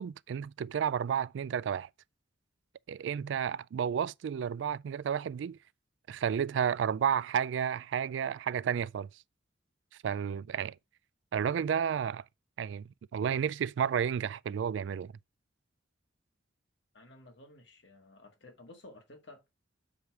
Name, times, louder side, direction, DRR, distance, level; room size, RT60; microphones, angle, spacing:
voice 1, 0.0-1.9 2.9-5.6 6.1-9.1 10.0-10.7 11.3-12.2 12.6-15.1, right 8 dB, 75° right, 0.3 m, -31 dB
voice 2, 16.9-19.4, left 2 dB, 65° left, 1.8 m, -53 dB
6.8 x 4.8 x 4.7 m
head